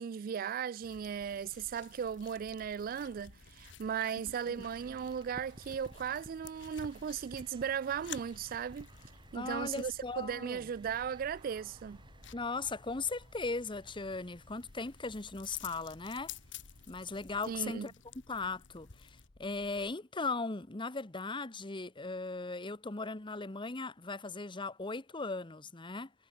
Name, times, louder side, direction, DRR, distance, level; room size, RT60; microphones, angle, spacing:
voice 1, 0.0-8.9 9.3-12.0 17.5-17.9, right 7 dB, 50° right, 0.3 m, -37 dB
sound 1, 0.8-19.3, left 10 dB, 80° left, 1.6 m, -53 dB
sound 2, 0.9-19.9, left 1 dB, 60° left, 1.2 m, -61 dB
sound 3, 4.6-17.7, right 1 dB, 25° right, 3.8 m, -57 dB
voice 2, 9.3-10.7 12.3-16.3 16.9-17.9 18.3-26.1, left 3 dB, 25° left, 1.1 m, -38 dB
head